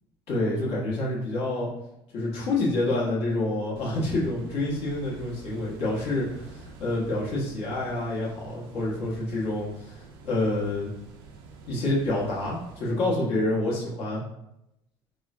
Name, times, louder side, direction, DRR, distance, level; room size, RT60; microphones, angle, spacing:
voice 1, 0.3-1.7 2.1-10.9 11.7-14.2, left 2 dB, 60° left, -6 dB, 1.2 m, -28 dB
sound 1, 3.8-12.8, right 3 dB, 80° right, 0.5 m, -47 dB
3.7 x 2.2 x 2.5 m, 0.83 s
hypercardioid pair, 70°, 12 cm